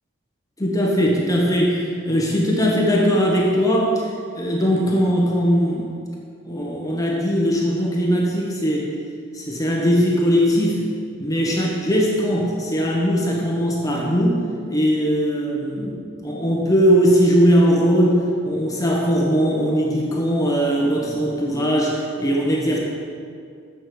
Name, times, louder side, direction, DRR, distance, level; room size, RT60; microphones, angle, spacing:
voice 1, 0.6-4.1 4.3-5.9 6.5-8.9 9.3-10.8 11.2-14.4 14.7-22.8, equal, 15° left, -2 dB, 1.2 m, -20 dB
7.7 x 7.2 x 7.0 m, 2.3 s
head